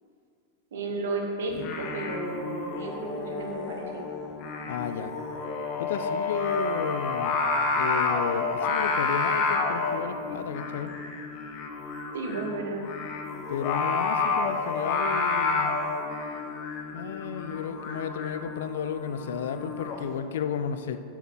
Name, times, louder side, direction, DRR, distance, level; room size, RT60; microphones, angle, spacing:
voice 1, 0.7-4.0 12.1-12.9, right 2 dB, 60° right, 1 dB, 1.1 m, -33 dB
Singing, 1.5-20.0, left 4 dB, 40° left, 0.8 m, -30 dB
voice 2, 4.7-5.1 5.8-7.4 7.8-10.9 13.5-15.8 16.9-21.0, left 8 dB, 60° left, 10 dB, 0.4 m, -33 dB
7.7 x 4.6 x 5.9 m, 2.5 s
figure-of-eight pair, 90°, 0 cm